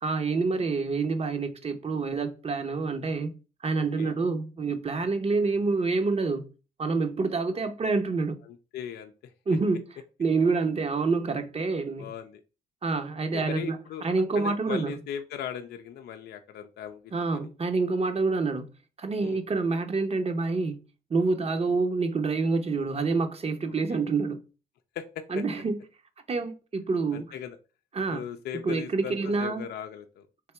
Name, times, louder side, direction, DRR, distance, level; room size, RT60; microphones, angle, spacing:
voice 1, 0.0-3.3 3.6-6.4 6.8-8.4 9.5-9.8 10.2-12.1 12.8-15.0 17.1-18.7 19.0-20.8 21.1-24.4 25.3-25.8 26.3-27.3 27.9-28.2 28.6-29.6, right 4 dB, 40° right, 0.8 m, -27 dB
voice 2, 8.4-9.3 12.0-12.4 13.3-14.0 14.3-17.5 19.2-19.4 23.9-24.0 24.9-25.4 27.1-27.6 28.1-30.3, left 9 dB, 80° left, 0.5 m, -38 dB
3.4 x 2.8 x 4.4 m
supercardioid pair, 60°, 17 cm